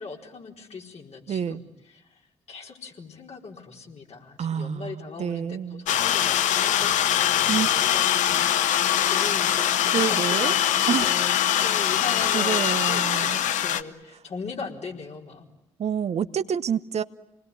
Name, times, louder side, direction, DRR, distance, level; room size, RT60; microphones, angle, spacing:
voice 1, 0.0-10.5 10.8-15.5, left 4 dB, 55° left, 4.4 m, -39 dB
voice 2, 1.3-1.6 4.4-5.8 7.5-7.7 9.9-10.6 10.9-11.1 12.3-13.4 15.8-17.0, right 8 dB, 55° right, 0.9 m, -28 dB
sound 1, 5.9-13.8, left 11 dB, 70° left, 0.9 m, -23 dB
28.0 x 20.0 x 9.9 m
hypercardioid pair, 40°, 13 cm